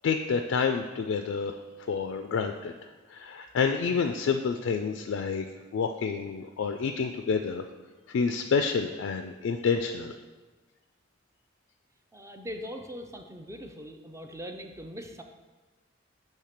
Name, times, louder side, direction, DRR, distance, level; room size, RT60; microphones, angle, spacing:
voice 1, 0.0-1.6 1.9-2.7 3.1-5.4 5.7-7.6 8.1-10.1, left 5 dB, 80° left, 6 dB, 0.3 m, -28 dB
voice 2, 12.1-15.2, equal, 15° right, 5 dB, 0.4 m, -41 dB
6.5 x 3.2 x 5.8 m, 1.3 s
head